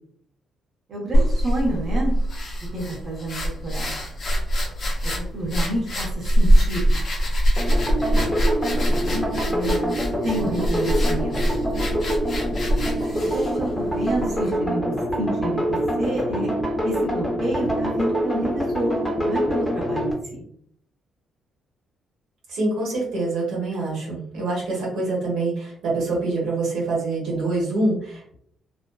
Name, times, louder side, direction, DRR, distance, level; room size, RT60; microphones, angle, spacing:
voice 1, 0.9-2.1 2.7-4.0 5.0-7.0 8.9-11.4 13.2-16.5 16.8-20.4, right 1 dB, 50° right, -4 dB, 0.9 m, -29 dB
sound 1, 1.1-14.6, equal, 50° left, 0.6 m, -23 dB
sound 2, 7.6-20.1, equal, 15° left, 0.7 m, -25 dB
voice 2, 22.5-28.4, right 2 dB, 85° right, -3 dB, 1.0 m, -25 dB
2.6 x 2.1 x 2.2 m, 0.66 s
cardioid pair, 90°, 0 cm